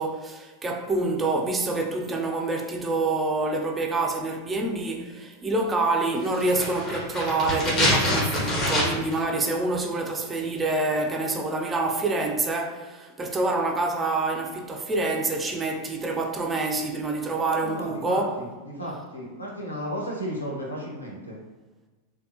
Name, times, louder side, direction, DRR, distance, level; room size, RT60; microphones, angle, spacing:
voice 1, 0.0-18.3, right 2 dB, 15° right, 0.4 m, -27 dB
sound 1, 6.3-9.2 9.5-9.6, left 1 dB, 30° left, 1.0 m, -25 dB
voice 2, 17.6-21.4, equal, 85° left, 0.8 m, -34 dB
3.2 x 2.3 x 2.7 m
figure-of-eight pair, 90°, 0 cm